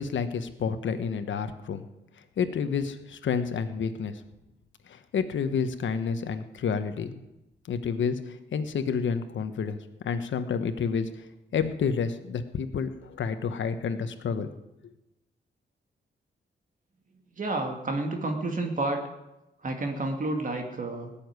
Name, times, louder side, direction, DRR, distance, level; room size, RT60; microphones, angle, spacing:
voice 1, 0.0-1.9 2.4-4.2 4.9-7.2 7.7-9.8 10.0-11.1 11.5-14.5, left 6 dB, 80° left, 9 dB, 1.2 m, -29 dB
voice 2, 17.4-19.0 19.6-21.1, right 2 dB, 45° right, 3 dB, 2.2 m, -30 dB
18.0 x 7.2 x 9.6 m, 0.96 s
cardioid pair, 105°, 19 cm